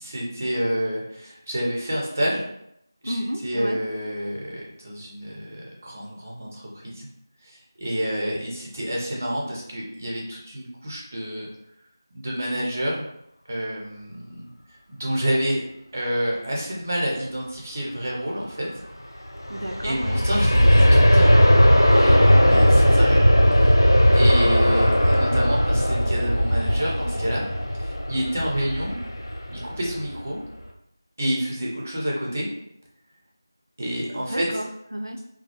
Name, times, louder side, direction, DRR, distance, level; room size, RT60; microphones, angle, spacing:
voice 1, 0.0-2.4 3.0-7.1 7.4-11.5 12.1-13.1 13.5-14.5 14.9-15.6 15.9-18.7 19.8-21.4 21.8-23.2 23.6-23.8 24.1-27.5 27.8-29.0 29.5-30.4 31.2-32.5 33.8-34.5, equal, 35° right, -3 dB, 0.6 m, -28 dB
voice 2, 3.0-3.8 19.5-20.2 34.3-35.2, equal, 85° right, 3 dB, 0.4 m, -31 dB
Aircraft, 19.3-30.1 30.6-30.7, equal, 85° left, 0.4 m, -18 dB
2.2 x 2.0 x 2.8 m, 0.78 s
figure-of-eight pair, 170°, 2 cm